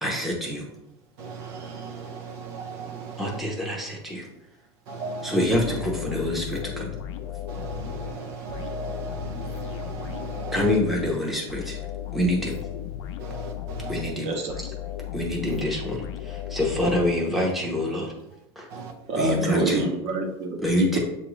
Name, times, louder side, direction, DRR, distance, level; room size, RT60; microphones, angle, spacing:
voice 1, 0.0-0.7 3.2-4.3 5.2-6.9 10.5-11.8 12.1-12.6 13.9-14.3 15.1-18.1 18.6-18.7 19.2-19.8 20.6-21.0, left 1 dB, ahead, -2 dB, 0.8 m, -26 dB
voice 2, 1.2-3.4 4.9-5.5 7.5-10.8 13.2-14.0 16.8-16.9 18.7-19.4, right 4 dB, 70° right, 4 dB, 0.6 m, -37 dB
sound 1, 5.5-17.7, left 10 dB, 80° left, 0.6 m, -35 dB
voice 3, 14.2-14.6 19.1-20.6 20.9-21.0, right 3 dB, 50° right, 2 dB, 1.0 m, -27 dB
6.9 x 2.5 x 3.1 m, 0.89 s
supercardioid pair, 145°, 14 cm